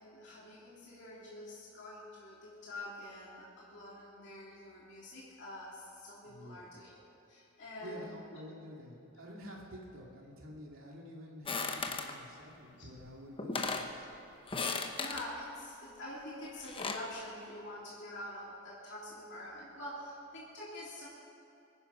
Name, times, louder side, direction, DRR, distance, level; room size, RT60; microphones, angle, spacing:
voice 1, 0.0-7.0 7.3-8.3 12.8-12.9 14.6-21.1, left 1 dB, 55° left, -6 dB, 2.8 m, -46 dB
voice 2, 6.2-6.7 7.8-14.1, equal, 75° right, -2 dB, 2.6 m, -49 dB
sound 1, 11.5-12.2 13.1-13.2 13.4-13.9 14.5-15.3 16.4-17.1, left 4 dB, 25° left, 1.0 m, -36 dB
23.5 x 9.9 x 5.6 m, 2.8 s
head